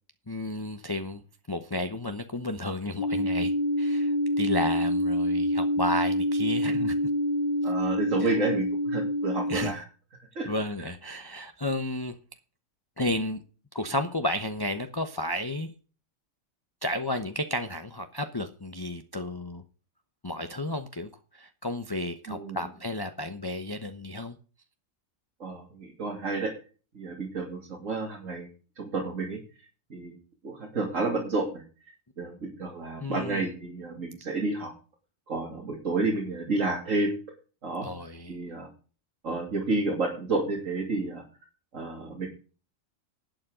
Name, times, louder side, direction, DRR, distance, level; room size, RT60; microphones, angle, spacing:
voice 1, 0.3-1.2 1.5-3.5 3.8-7.0 8.2-8.4 9.5-9.8 10.4-12.1 13.0-13.4 13.7-15.7 16.8-19.6 20.2-24.4 33.0-33.5 37.8-38.4, left 1 dB, 20° left, 7 dB, 0.9 m, -32 dB
sound 1, 3.0-9.7, equal, 35° left, 2.4 m, -26 dB
voice 2, 7.6-9.8 10.3-10.5 22.3-22.7 25.4-26.5 26.9-28.5 28.8-29.4 29.9-30.2 30.4-31.6 32.2-34.7 35.3-37.1 37.6-37.9 38.3-38.7 39.2-41.2 41.7-42.3, right 3 dB, 70° right, -1 dB, 3.1 m, -30 dB
12.0 x 8.7 x 5.0 m, 0.36 s
omnidirectional pair, 1.4 m